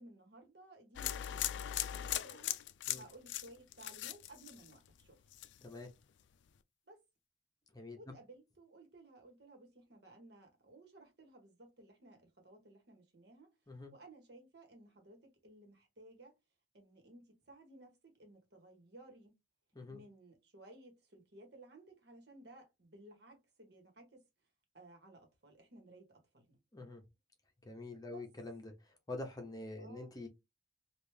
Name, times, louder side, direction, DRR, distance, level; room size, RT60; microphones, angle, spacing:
voice 1, 0.0-2.6 2.9-5.2 6.9-7.0 8.0-13.5 13.9-16.3 16.7-19.3 19.9-24.2 24.7-26.6 28.0-28.2 29.8-30.1, right 2 dB, 65° right, 1.3 m, -58 dB
sound 1, 1.0-5.0 5.3-5.8, left 12 dB, 70° left, 0.3 m, -39 dB
voice 2, 7.7-8.1 13.7-13.9 19.7-20.0 26.7-27.0 27.6-28.7 29.1-30.3, left 2 dB, 20° left, 0.8 m, -46 dB
3.4 x 2.5 x 3.2 m
head